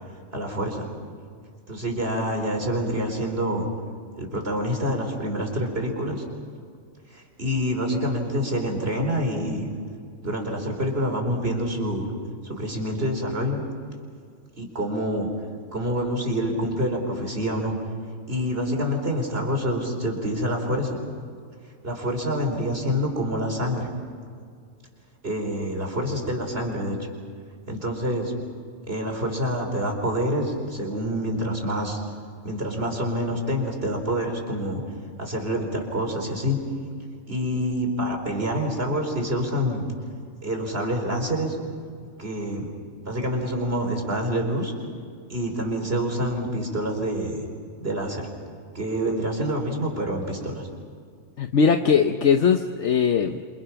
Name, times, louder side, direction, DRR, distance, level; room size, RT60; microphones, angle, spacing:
voice 1, 0.3-0.9 1.7-3.7 4.2-6.2 7.1-9.7 10.2-12.1 12.4-13.6 14.6-15.3 15.7-17.7 18.3-21.0 21.8-23.9 25.2-27.0 27.7-28.3 28.9-32.0 32.4-34.8 35.2-36.6 37.3-39.8 40.4-41.6 42.2-42.7 43.0-44.7 45.3-47.4 47.8-48.3 48.7-50.7, equal, 50° right, 3 dB, 4.7 m, -27 dB
voice 2, 51.4-53.4, left 6 dB, 65° left, 6 dB, 1.2 m, -20 dB
29.0 x 27.5 x 5.9 m, 2.2 s
omnidirectional pair, 1.3 m